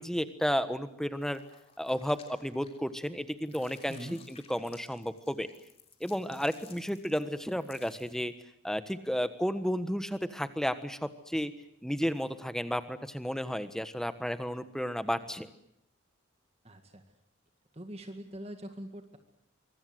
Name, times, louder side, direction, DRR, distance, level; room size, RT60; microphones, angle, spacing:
voice 1, 0.0-1.4 1.8-5.5 6.0-8.3 8.6-11.5 11.8-15.5, equal, ahead, 11 dB, 1.3 m, -32 dB
sound 1, 1.1-3.1 3.4-8.3, left 6 dB, 30° left, 3.5 m, -58 dB
voice 2, 3.9-4.2 16.6-17.0 17.7-19.2, right 1 dB, 30° right, 6 dB, 2.0 m, -43 dB
25.0 x 24.5 x 8.0 m, 0.76 s
head